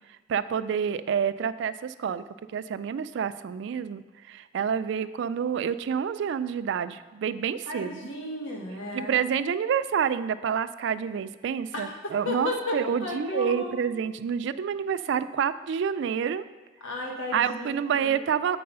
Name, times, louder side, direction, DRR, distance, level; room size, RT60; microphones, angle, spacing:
voice 1, 0.1-2.2 2.5-8.1 8.9-16.4 17.3-18.6, right 7 dB, 65° right, 14 dB, 0.3 m, -28 dB
voice 2, 7.7-9.1 11.7-13.8 16.8-18.2, left 2 dB, 80° left, -1 dB, 1.3 m, -34 dB
7.7 x 4.6 x 5.4 m, 1.2 s
head